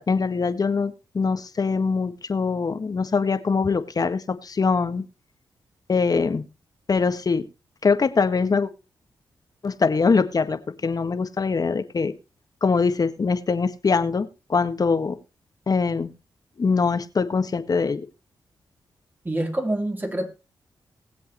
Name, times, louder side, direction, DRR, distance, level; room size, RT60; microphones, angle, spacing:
voice 1, 0.0-5.0 5.9-6.5 6.9-7.5 7.8-8.7 9.6-12.1 12.6-15.2 15.7-16.1 16.6-18.1, left 4 dB, 45° left, 1.5 m, -23 dB
voice 2, 19.2-20.3, right 1 dB, 20° right, 3.5 m, -26 dB
20.0 x 7.8 x 3.0 m
cardioid pair, 65°, 9 cm